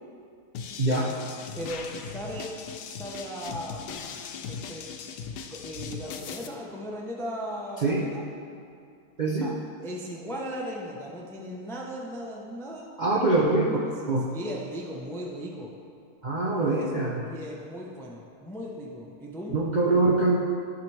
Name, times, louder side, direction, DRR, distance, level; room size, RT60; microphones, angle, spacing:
sound 1, 0.5-6.5, left 6 dB, 90° left, 1.2 m, -39 dB
voice 1, 0.8-1.1 7.8-8.0 9.2-9.5 13.0-13.8 14.1-14.3 16.2-17.2 19.5-20.4, right 2 dB, 50° right, -4 dB, 0.5 m, -23 dB
voice 2, 1.6-2.5 2.9-4.9 5.5-8.2 9.4-9.6 9.8-12.9 13.3-13.7 14.3-15.7 16.5-19.6, equal, 5° left, -2 dB, 0.4 m, -37 dB
13.5 x 5.0 x 3.3 m, 2.4 s
omnidirectional pair, 1.7 m